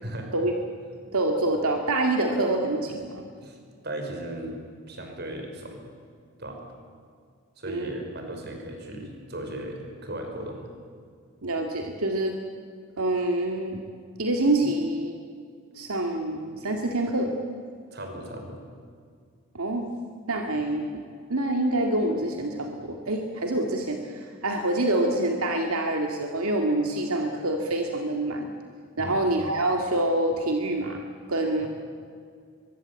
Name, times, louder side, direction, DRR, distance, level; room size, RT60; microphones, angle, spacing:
voice 1, 1.1-3.2 7.7-8.0 11.4-12.4 13.0-13.8 14.2-15.2 15.7-17.3 19.5-19.9 20.3-21.0 21.3-28.5 29.0-31.0 31.3-31.7, right 1 dB, 80° right, 3 dB, 2.1 m, -26 dB
voice 2, 3.8-4.6 4.9-5.8 6.4-6.6 7.6-10.7 17.9-18.6 29.0-29.2 31.6-31.7, right 1 dB, 45° right, 3 dB, 5.2 m, -36 dB
23.5 x 23.0 x 8.3 m, 2.2 s
head